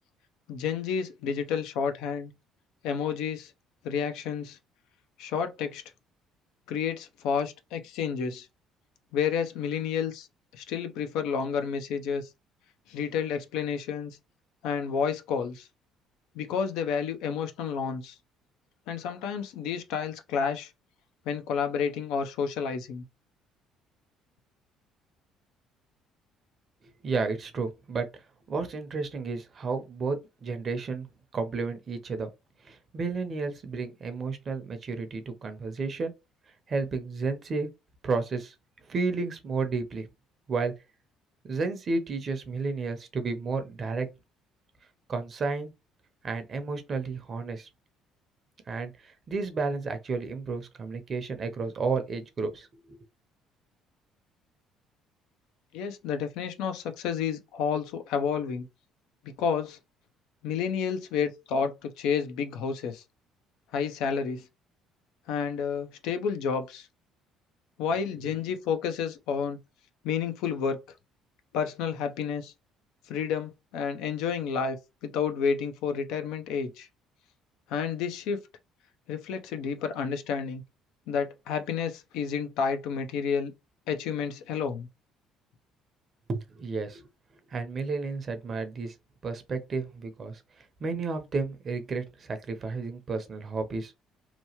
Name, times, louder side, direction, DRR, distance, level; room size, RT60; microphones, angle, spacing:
voice 1, 0.5-2.3 2.8-3.5 3.8-4.6 5.2-5.8 6.7-8.5 9.1-10.3 10.5-12.3 12.9-14.2 14.6-15.7 16.3-18.2 18.9-20.7 21.3-23.0 55.7-58.7 59.4-59.8 60.4-63.0 63.7-64.5 65.3-66.9 67.8-69.6 70.0-70.8 71.5-72.5 73.1-76.9 77.7-78.4 79.1-80.6 81.1-83.5 83.9-84.9, left 6 dB, 80° left, 0.5 m, -30 dB
voice 2, 27.0-28.1 28.5-31.1 31.3-32.3 32.6-36.1 36.7-37.7 38.0-38.5 38.9-40.1 40.5-40.7 41.5-44.1 45.1-45.7 46.2-47.7 48.7-53.0 86.3-87.0 87.5-88.9 89.2-90.4 90.8-93.9, right 4 dB, 40° right, 0.7 m, -32 dB
2.9 x 2.3 x 2.8 m
supercardioid pair, 90°, 0 cm